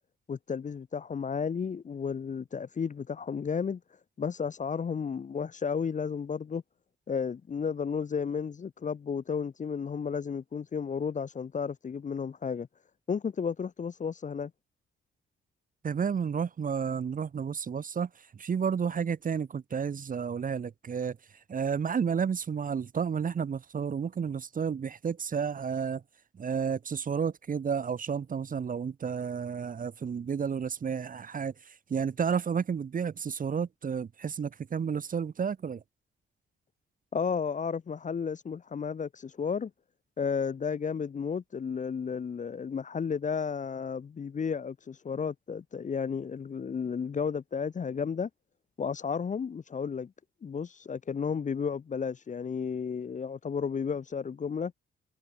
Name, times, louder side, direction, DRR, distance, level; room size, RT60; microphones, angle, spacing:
voice 1, 0.3-3.8 4.2-6.6 7.1-12.7 13.1-14.5 37.1-39.7 40.2-48.3 48.8-50.1 50.4-54.7, left 6 dB, 35° left, 0.7 m, -33 dB
voice 2, 15.8-21.2 21.5-26.0 26.4-31.5 31.9-35.8, right 6 dB, 40° right, 0.9 m, -31 dB
cardioid pair, 85°, 21 cm